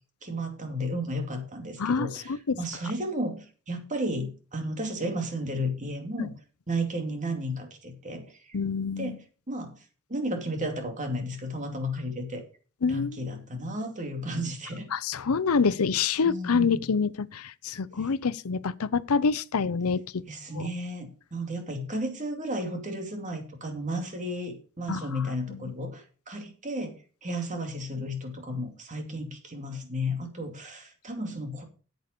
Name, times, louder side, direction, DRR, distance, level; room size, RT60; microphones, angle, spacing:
voice 1, 0.2-6.3 6.7-8.6 9.0-9.8 10.1-12.4 12.9-14.9 16.2-16.8 18.0-18.1 20.2-31.6, equal, 35° right, 2.6 m, -33 dB
voice 2, 8.5-9.2 12.8-13.2 14.9-20.0 20.5-20.7 24.9-25.0, left 5 dB, 90° left, 0.6 m, -26 dB
9.2 x 8.2 x 5.2 m
head